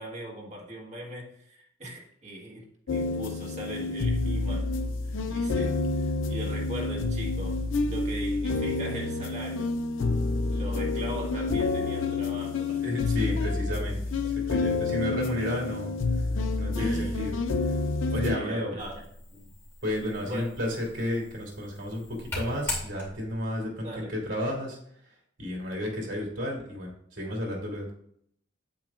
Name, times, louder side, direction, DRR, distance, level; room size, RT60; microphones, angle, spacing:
voice 1, 0.0-4.7 5.0-9.7 10.5-12.8 13.3-13.5 14.2-14.4 16.8-17.3 18.2-19.1 19.3-19.5 20.2-20.5 23.8-24.1, equal, 35° right, 1.5 m, -40 dB
sound 1, 2.9-18.4, left 3 dB, 90° left, 0.6 m, -28 dB
voice 2, 12.8-14.0 14.5-15.9 16.6-17.3 18.1-18.7 19.8-24.8 25.4-27.9, left 1 dB, 75° right, 2.8 m, -32 dB
sound 2, 18.8-23.5, left 1 dB, 15° left, 2.6 m, -40 dB
8.8 x 8.3 x 2.5 m
head